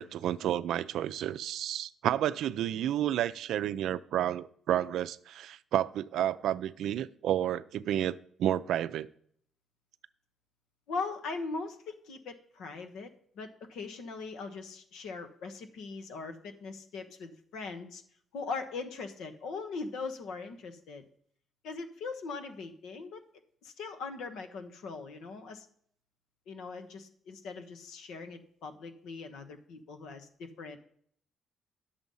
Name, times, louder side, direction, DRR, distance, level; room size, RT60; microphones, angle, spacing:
voice 1, 0.0-9.1, right 11 dB, 80° right, 0.4 m, -31 dB
voice 2, 10.9-13.1 13.3-18.0 18.3-21.0 21.6-23.2 23.6-25.7 26.5-30.8, left 4 dB, 85° left, 1.2 m, -40 dB
10.5 x 7.0 x 5.5 m
cardioid pair, 90°, 0 cm